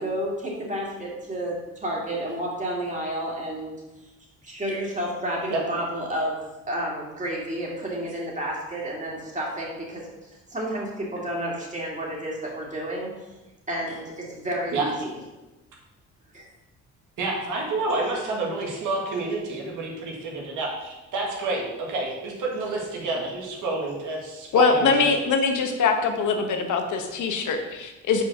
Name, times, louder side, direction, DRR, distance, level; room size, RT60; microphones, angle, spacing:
voice 1, 0.0-3.8 4.4-13.1 13.7-15.2 16.3-16.4, right 1 dB, 25° right, -3 dB, 2.6 m, -31 dB
voice 2, 17.2-21.6 21.9-25.2, right 3 dB, 85° right, -2 dB, 1.8 m, -29 dB
voice 3, 24.5-28.2, left 5 dB, 75° left, 5 dB, 1.2 m, -22 dB
5.7 x 4.7 x 6.2 m, 1.1 s
cardioid pair, 90°, 30 cm